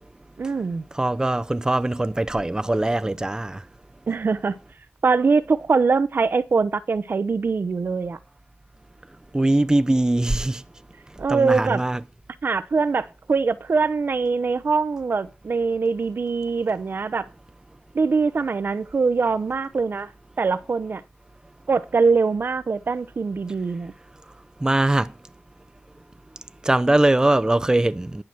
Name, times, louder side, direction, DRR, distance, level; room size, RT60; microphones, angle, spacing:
voice 1, 0.4-0.8 4.1-4.6 5.0-8.2 11.2-11.8 12.4-17.2 17.9-20.1 20.4-21.0 21.7-23.9, right 4 dB, 65° right, 0.8 m, -23 dB
voice 2, 0.9-3.6 9.3-10.6 11.3-12.0 24.6-25.1 26.6-28.2, right 1 dB, 20° right, 0.6 m, -21 dB
10.5 x 6.0 x 7.8 m
wide cardioid pair, 70°, 4 cm